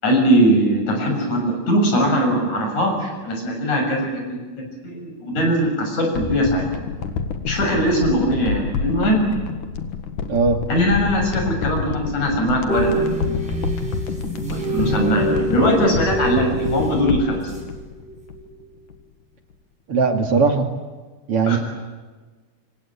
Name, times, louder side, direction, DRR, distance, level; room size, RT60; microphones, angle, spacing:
voice 1, 0.0-4.4 4.8-6.7 7.5-9.2 10.7-13.1 14.5-17.5 21.4-21.6, equal, 70° left, 3 dB, 8.3 m, -20 dB
sound 1, 6.1-18.6 18.9-19.0, left 5 dB, 85° left, 3.2 m, -28 dB
voice 2, 10.3-10.6 19.9-20.7 21.3-21.6, right 4 dB, 50° right, 5 dB, 3.1 m, -18 dB
sound 2, 12.7-17.8 18.1-18.4, right 2 dB, ahead, 7.3 m, -26 dB
26.5 x 24.5 x 8.9 m, 1.3 s
omnidirectional pair, 3.5 m